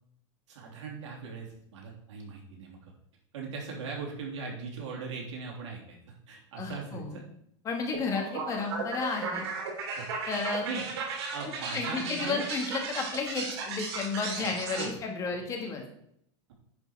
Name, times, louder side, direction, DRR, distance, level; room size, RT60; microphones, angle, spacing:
voice 1, 0.5-2.9 3.3-7.2 10.0-10.1 10.6-10.8 11.3-12.5 14.4-14.5 14.7-14.9, right 4 dB, 80° right, -1 dB, 3.3 m, -39 dB
voice 2, 6.6-7.1 7.7-9.5 10.3-10.7 11.7-15.8, left 4 dB, 20° left, 2 dB, 1.8 m, -32 dB
sound 1, 7.9-14.9, right 4 dB, 60° right, 3.2 m, -36 dB
10.5 x 5.3 x 4.7 m, 0.70 s
supercardioid pair, 155°, 15 cm